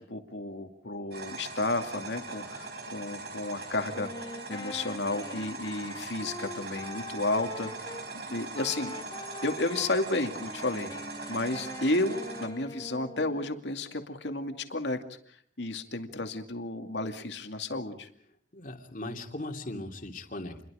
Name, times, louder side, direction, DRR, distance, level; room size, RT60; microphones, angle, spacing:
voice 1, 0.0-4.1 4.5-7.9 8.3-8.9 9.4-10.9 11.3-15.0 15.6-18.1, left 2 dB, 65° left, 5 dB, 2.4 m, -32 dB
sound 1, 1.1-12.5, right 3 dB, 60° right, 4.6 m, -41 dB
Wind instrument woodwind instrument, 3.9-8.1 8.5-10.0 10.4-13.6, left 2 dB, 20° left, 1.6 m, -43 dB
voice 2, 18.5-20.7, left 1 dB, 45° left, 4 dB, 2.8 m, -38 dB
29.0 x 22.5 x 5.0 m, 0.63 s
head